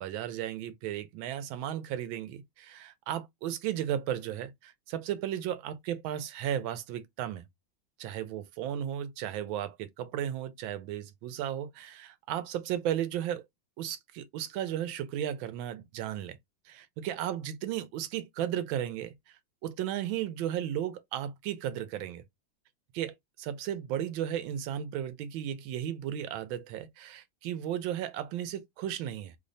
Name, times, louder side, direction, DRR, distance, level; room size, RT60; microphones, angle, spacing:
voice 1, 0.0-7.5 8.0-13.4 13.8-16.4 16.7-22.2 22.9-29.4, right 10 dB, 90° right, 1.4 m, -35 dB
3.3 x 2.1 x 3.9 m
omnidirectional pair, 2.1 m